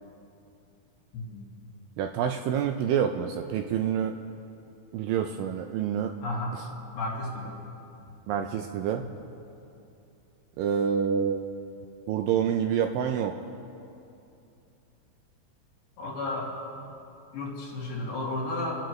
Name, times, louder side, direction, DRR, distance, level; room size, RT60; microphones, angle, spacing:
voice 1, 1.1-1.5 6.2-6.6 6.9-7.5 16.0-16.5 17.3-18.8, left 2 dB, 80° left, -5 dB, 4.4 m, -33 dB
voice 2, 2.0-4.1 4.9-6.1 8.3-9.0 10.6-11.5 12.1-13.3, right 8 dB, 80° right, 5 dB, 2.0 m, -27 dB
26.0 x 11.5 x 3.1 m, 2.7 s
omnidirectional pair, 4.3 m